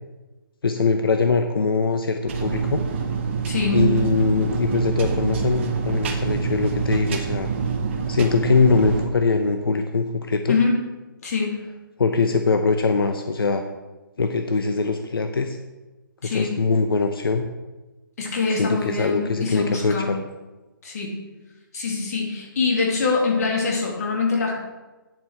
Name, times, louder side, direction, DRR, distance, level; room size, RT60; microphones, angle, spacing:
voice 1, 0.6-2.8 3.7-7.5 8.1-10.6 12.0-13.6 14.2-15.6 16.2-17.5 18.6-20.2, left 4 dB, 85° left, 6 dB, 0.8 m, -22 dB
sound 1, 2.3-9.1, right 5 dB, 30° right, 1.0 m, -26 dB
voice 2, 3.5-3.9 10.5-10.8 11.2-11.6 16.2-16.6 18.2-20.1 20.8-21.2 21.7-24.5, left 4 dB, 45° left, 0 dB, 2.5 m, -24 dB
9.5 x 7.6 x 4.6 m, 1.1 s
hypercardioid pair, 165°, 12 cm